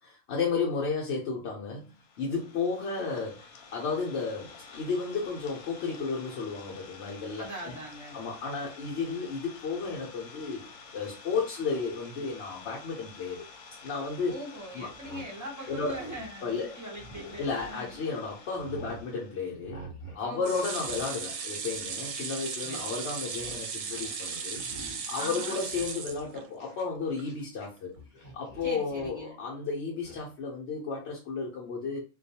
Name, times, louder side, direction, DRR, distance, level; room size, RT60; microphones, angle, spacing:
voice 1, 0.0-7.7 8.1-10.6 10.9-13.4 13.8-14.3 14.7-14.9 15.7-16.0 16.4-16.8 17.4-19.8 20.1-24.6 25.1-27.9 28.3-32.0, left 4 dB, 60° left, -3 dB, 0.8 m, -33 dB
Idling, 1.8-19.5, left 4 dB, 85° left, 1.0 m, -50 dB
voice 2, 7.4-8.2 14.3-18.0 20.2-20.7 22.6-22.9 25.2-25.6 28.6-29.4, right 1 dB, 20° right, -2 dB, 0.4 m, -41 dB
sound 1, 14.9-18.0 18.4-19.1 19.6-20.2 20.5-23.0 23.2-23.6 23.9-24.2 24.5-25.2 25.5-27.7 27.9-29.2 30.0-30.2, right 2 dB, 35° left, 0.8 m, -48 dB
sound 2, 20.4-26.7 27.2-27.3 27.6-27.7, right 5 dB, 70° right, 0.9 m, -36 dB
2.3 x 2.2 x 2.7 m, 0.33 s
omnidirectional pair, 1.5 m